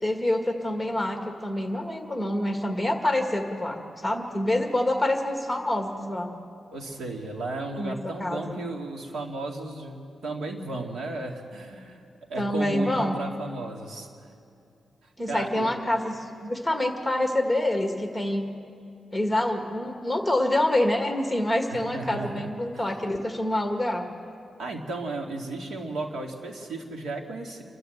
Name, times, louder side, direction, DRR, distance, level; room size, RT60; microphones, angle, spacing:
voice 1, 0.0-6.3 7.8-7.9 8.2-8.6 12.4-13.2 15.2-18.5 19.1-24.0, left 1 dB, 5° left, 3 dB, 1.8 m, -26 dB
voice 2, 6.7-12.0 12.3-14.1 15.3-15.7 21.7-23.0 24.6-27.6, right 2 dB, 90° right, 1 dB, 2.4 m, -34 dB
28.5 x 12.5 x 8.0 m, 2.6 s
wide cardioid pair, 135°, 0 cm